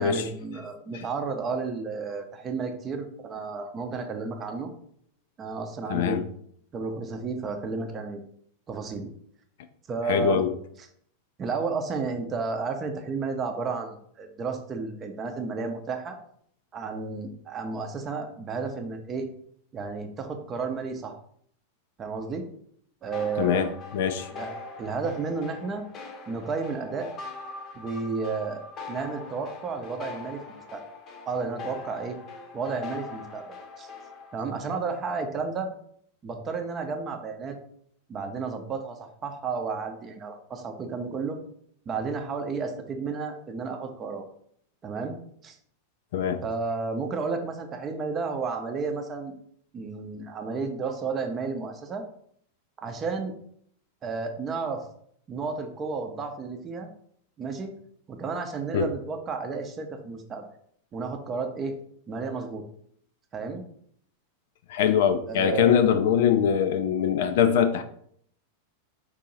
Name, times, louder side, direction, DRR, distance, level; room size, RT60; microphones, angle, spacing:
voice 1, 0.0-4.7 5.4-6.3 6.7-8.2 8.7-9.1 9.9-10.4 11.4-16.2 16.7-19.3 19.7-21.2 22.0-22.4 23.0-23.7 24.3-24.5 24.8-25.8 26.3-27.1 27.7-30.8 31.3-32.2 32.5-33.9 34.3-35.7 36.2-37.6 38.1-41.4 41.9-44.3 44.8-45.2 45.4-45.6 46.4-49.3 49.7-52.0 52.8-53.3 54.0-54.8 55.3-56.9 57.4-57.7 58.1-60.5 60.9-61.7 62.1-62.6 63.3-63.6 65.3-65.9, right 4 dB, 25° right, 5 dB, 0.7 m, -32 dB
voice 2, 5.9-6.2 10.1-10.5 23.4-24.3 46.1-46.4 58.7-58.9 64.7-67.8, left 8 dB, 55° left, 10 dB, 0.4 m, -23 dB
sound 1, 23.1-34.4, left 4 dB, 30° left, 0.8 m, -42 dB
4.5 x 2.7 x 4.0 m, 0.65 s
figure-of-eight pair, 90°, 0 cm